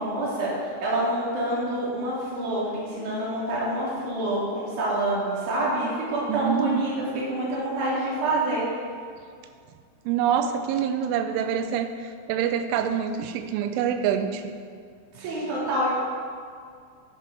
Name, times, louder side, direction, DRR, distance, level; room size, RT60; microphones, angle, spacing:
voice 1, 0.0-8.7 15.1-15.9, right 1 dB, 45° right, -6 dB, 3.4 m, -27 dB
voice 2, 6.3-6.9 10.1-14.6 15.2-15.3, right 8 dB, 85° right, 8 dB, 3.1 m, -26 dB
9.7 x 7.5 x 5.2 m, 2.2 s
omnidirectional pair, 5.7 m